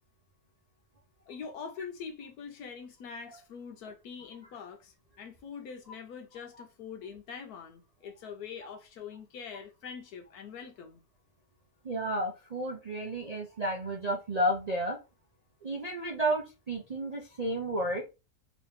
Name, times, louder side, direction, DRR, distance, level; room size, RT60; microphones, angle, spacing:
voice 1, 1.3-11.0, left 6 dB, 75° left, 1.1 m, -44 dB
voice 2, 11.8-15.0 15.6-18.0, right 1 dB, 55° right, 0.4 m, -32 dB
3.1 x 2.9 x 3.2 m
omnidirectional pair, 1.7 m